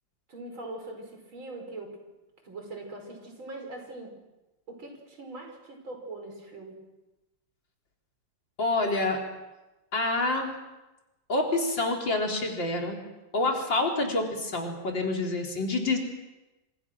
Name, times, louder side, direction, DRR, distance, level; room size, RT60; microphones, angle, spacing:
voice 1, 0.3-2.0 2.4-4.1 4.7-6.8, right 2 dB, 90° right, 3 dB, 6.2 m, -41 dB
voice 2, 8.6-9.2 9.9-10.5 11.3-13.0 13.3-16.0, left 2 dB, 65° left, 1 dB, 4.7 m, -27 dB
27.0 x 27.0 x 6.3 m, 1.0 s
omnidirectional pair, 2.1 m